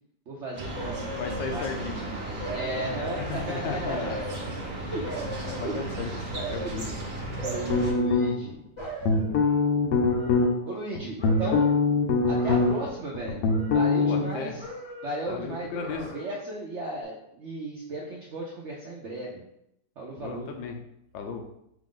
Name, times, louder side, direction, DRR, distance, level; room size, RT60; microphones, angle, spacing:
voice 1, 0.3-4.6 4.9-5.1 5.6-5.8 7.3-8.5 10.7-11.7 12.3-14.6 15.0-19.4 20.0-20.5, right 2 dB, 70° right, -3 dB, 0.6 m, -35 dB
sound 1, 0.5-7.9, right 2 dB, 40° right, 0.9 m, -35 dB
sound 2, 0.8-2.0 2.4-3.5 3.8-6.0 6.3-6.9 7.4-8.5 8.8-10.9 11.2-11.9 12.3-13.1 13.4-14.3 14.6-15.3 15.7-16.5 16.9-17.0, equal, 30° left, 0.5 m, -40 dB
voice 2, 1.1-2.0 3.2-4.2 5.4-6.1 6.5-6.9 14.0-14.6 15.3-16.0 20.2-20.8 21.1-21.4, left 5 dB, 85° left, 4 dB, 1.3 m, -35 dB
sound 3, 7.7-8.5 9.0-10.5 11.0-12.9 13.1-14.2, left 4 dB, 65° left, 0.9 m, -23 dB
5.8 x 2.5 x 3.7 m, 0.79 s
omnidirectional pair, 2.0 m